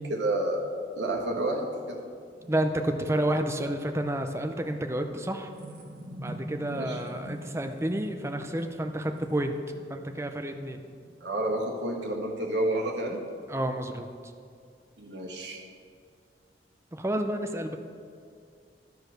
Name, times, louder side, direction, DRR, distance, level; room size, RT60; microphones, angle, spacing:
voice 1, 0.1-0.6 1.0-2.0 6.6-7.0 11.2-13.2 15.0-15.6, right 1 dB, 85° right, -1 dB, 1.5 m, -30 dB
sound 1, 1.8-11.9, right 1 dB, 55° right, 1.8 m, -46 dB
voice 2, 2.5-5.5 6.2-9.6 9.9-10.8 13.5-14.1 16.9-17.8, right 1 dB, 15° right, 6 dB, 0.5 m, -30 dB
12.5 x 4.7 x 6.4 m, 2.3 s
head